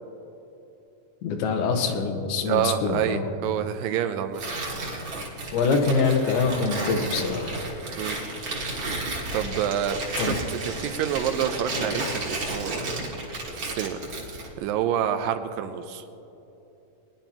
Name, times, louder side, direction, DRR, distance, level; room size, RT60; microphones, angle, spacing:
voice 1, 1.2-3.3 5.5-7.5 10.2-10.4, left 4 dB, 90° left, 4 dB, 2.9 m, -24 dB
voice 2, 2.5-4.5 8.0-8.2 9.3-13.0 13.2-14.0 14.6-16.1, right 9 dB, 80° right, 8 dB, 2.2 m, -28 dB
Tearing, 4.3-14.5, right 2 dB, 45° right, 2.0 m, -32 dB
20.0 x 10.5 x 2.9 m, 3.0 s
omnidirectional pair, 4.2 m